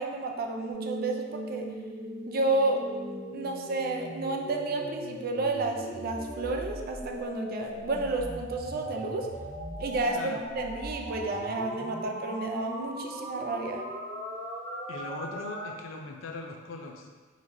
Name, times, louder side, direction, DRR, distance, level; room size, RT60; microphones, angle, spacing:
voice 1, 0.0-1.7 2.3-2.8 3.3-9.3 9.8-13.8, right 2 dB, 50° right, 2 dB, 0.4 m, -31 dB
sound 1, 0.7-15.7, equal, 70° right, 0.8 m, -39 dB
voice 2, 14.9-17.1, left 3 dB, 80° left, 2 dB, 0.5 m, -40 dB
4.0 x 3.0 x 2.6 m, 1.4 s
head